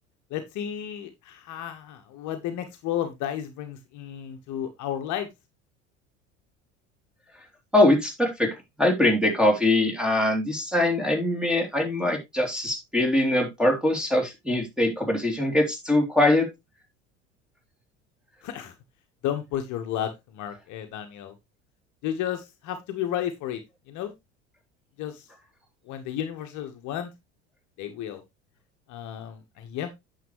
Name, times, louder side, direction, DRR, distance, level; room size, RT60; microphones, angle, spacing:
voice 1, 0.3-5.3 18.4-18.7 19.2-21.3 22.0-23.6 23.9-24.1 25.0-25.2 25.9-27.1 27.8-28.2 28.9-29.9, left 10 dB, 50° left, 7 dB, 1.3 m, -32 dB
voice 2, 7.7-16.5, left 1 dB, ahead, 2 dB, 3.4 m, -22 dB
9.2 x 6.8 x 3.1 m, 0.21 s
figure-of-eight pair, 70°, 38 cm